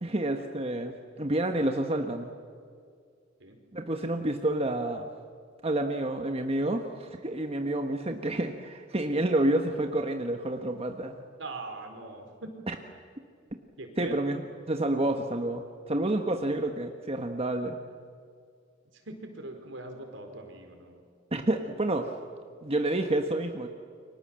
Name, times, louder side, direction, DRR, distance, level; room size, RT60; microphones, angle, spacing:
voice 1, 0.0-2.3 3.7-5.1 5.6-11.2 12.7-12.8 14.0-14.4 14.7-17.8 21.3-22.1 22.6-23.7, right 1 dB, 30° right, 4 dB, 1.4 m, -29 dB
voice 2, 11.4-12.5 13.8-14.4 16.4-16.6 18.9-21.0, right 2 dB, 75° right, 5 dB, 4.5 m, -41 dB
29.5 x 24.5 x 7.7 m, 2.2 s
head